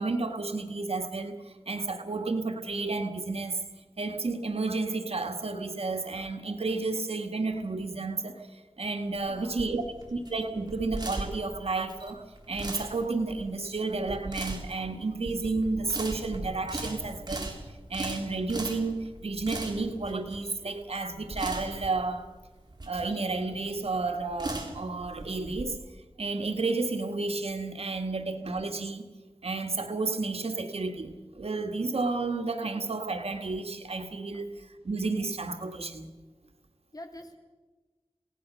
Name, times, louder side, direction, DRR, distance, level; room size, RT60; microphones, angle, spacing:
voice 1, 0.0-3.6 4.0-17.6 17.9-22.3 22.9-25.8 26.2-29.1 29.4-36.1, right 3 dB, 85° right, 6 dB, 1.8 m, -31 dB
sound 1, 9.1-25.6, right 2 dB, 45° right, 3.6 m, -39 dB
voice 2, 9.3-9.7 34.3-34.4 36.9-37.4, left 1 dB, 40° left, 4 dB, 3.2 m, -46 dB
27.5 x 17.5 x 6.3 m, 1.3 s
wide cardioid pair, 70°, 10 cm